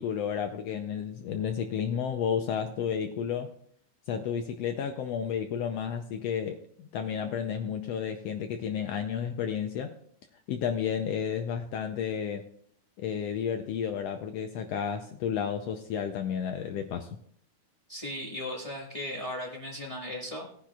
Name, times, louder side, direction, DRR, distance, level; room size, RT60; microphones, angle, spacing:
voice 1, 0.0-3.5 4.1-9.9 10.5-12.4 13.0-17.2, left 8 dB, 90° left, 6 dB, 1.4 m, -32 dB
voice 2, 17.9-20.5, left 1 dB, 50° left, -2 dB, 0.4 m, -37 dB
18.5 x 10.5 x 2.3 m, 0.64 s
omnidirectional pair, 3.6 m